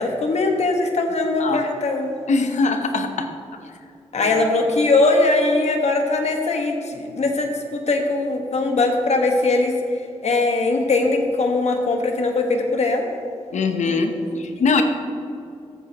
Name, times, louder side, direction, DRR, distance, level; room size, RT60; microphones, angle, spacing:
voice 1, 0.0-2.1 4.1-9.7 10.2-13.1 14.5-14.6, left 3 dB, 70° left, 3 dB, 1.4 m, -20 dB
voice 2, 2.3-3.3 4.2-4.3 13.5-14.8, left 4 dB, 85° left, 6 dB, 0.8 m, -22 dB
14.0 x 8.5 x 2.9 m, 2.5 s
cardioid pair, 65°, 12 cm